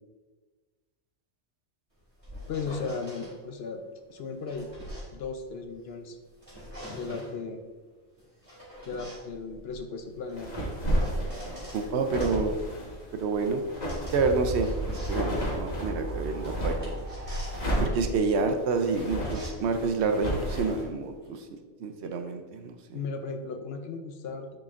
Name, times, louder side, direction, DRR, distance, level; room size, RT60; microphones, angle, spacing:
sound 1, 1.9-3.3 4.1-5.9 6.3-7.4 8.2-11.8 12.2-21.3, equal, 30° right, 2.2 m, -44 dB
voice 1, 2.5-3.8 4.1-4.7 5.1-6.2 6.9-7.6 8.8-10.5 22.9-24.6, left 4 dB, 65° left, 6 dB, 0.8 m, -36 dB
sound 2, 10.3-16.9 17.5-20.8, equal, 40° left, 1.4 m, -32 dB
voice 2, 11.7-12.6 13.1-13.6 14.1-17.1 17.8-23.0, right 4 dB, 70° right, 6 dB, 0.9 m, -29 dB
sound 3, 13.7-19.2, right 2 dB, 45° right, 0.6 m, -37 dB
10.5 x 4.0 x 2.5 m, 1.3 s
omnidirectional pair, 1.2 m